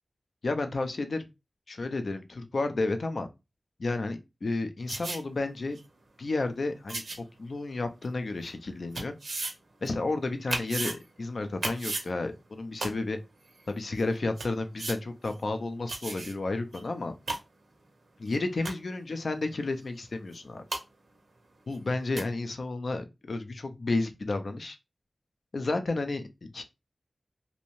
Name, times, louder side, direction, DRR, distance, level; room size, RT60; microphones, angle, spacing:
voice 1, 0.4-1.2 1.7-3.3 3.8-5.8 6.2-9.1 9.8-13.2 13.7-17.1 18.2-20.6 21.7-24.8 25.5-26.6, left 3 dB, 70° left, 0.4 m, -32 dB
sound 1, 4.9-5.2 5.8-5.9 6.9-7.2 8.0-8.1 8.9-9.5 9.8-9.9 10.5-10.9 11.6-12.1 12.8-12.9 13.6-13.7 14.0-14.1 14.4-14.5 14.8-14.9 15.2-15.3 15.9-16.3 16.7-16.8 17.1-17.4 18.3-18.4 18.6-18.9 20.3-20.4 20.7-20.8 21.7-21.8 22.2-22.3, right 2 dB, 90° right, 0.6 m, -33 dB
2.7 x 2.0 x 2.9 m
wide cardioid pair, 75°, 0 cm